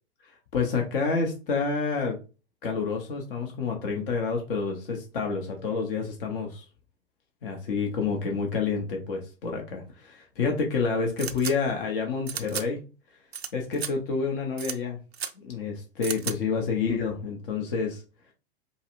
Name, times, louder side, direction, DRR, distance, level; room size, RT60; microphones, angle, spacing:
voice 1, 0.5-2.2 2.6-6.7 7.4-12.8 13.5-15.0 15.4-18.0, left 5 dB, 60° left, 2 dB, 1.0 m, -28 dB
sound 1, 11.2-11.5 12.3-12.6 13.3-13.5 13.7-13.9 14.6-14.8 15.1-15.3 16.0-16.3, right 8 dB, 90° right, 0.5 m, -33 dB
5.2 x 2.1 x 2.5 m, 0.33 s
figure-of-eight pair, 95°, 31 cm